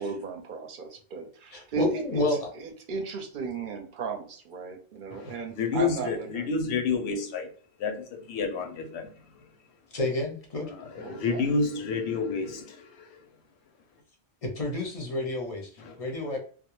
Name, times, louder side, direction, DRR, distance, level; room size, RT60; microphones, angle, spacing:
voice 1, 0.0-6.5 11.0-11.5, right 5 dB, 60° right, 0.6 m, -35 dB
voice 2, 1.5-2.5 9.9-10.7 14.4-16.4, left 2 dB, 40° left, 0.6 m, -30 dB
voice 3, 5.1-9.5 10.7-13.2 15.8-16.0, left 4 dB, 85° left, 0.9 m, -30 dB
2.3 x 2.0 x 2.9 m
omnidirectional pair, 1.1 m